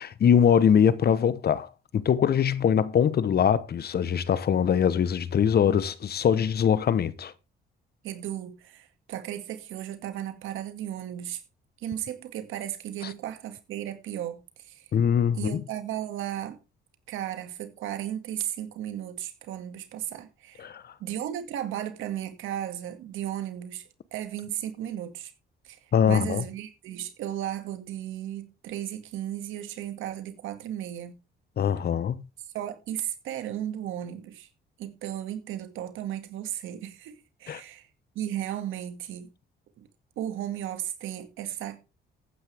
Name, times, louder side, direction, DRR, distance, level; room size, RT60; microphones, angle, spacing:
voice 1, 0.0-1.7 1.9-7.3 14.9-15.6 20.6-20.8 25.9-26.4 31.6-32.2 37.5-37.6, left 8 dB, 55° left, 1.0 m, -22 dB
voice 2, 8.0-11.4 11.8-14.9 15.3-16.6 17.1-20.7 21.0-23.8 24.1-25.3 25.6-25.8 26.1-31.2 32.5-34.5 34.8-37.9 38.2-39.3 39.8-39.9 40.2-41.8, right 11 dB, 85° right, 2.2 m, -35 dB
14.0 x 9.6 x 3.5 m
cardioid pair, 90°, 20 cm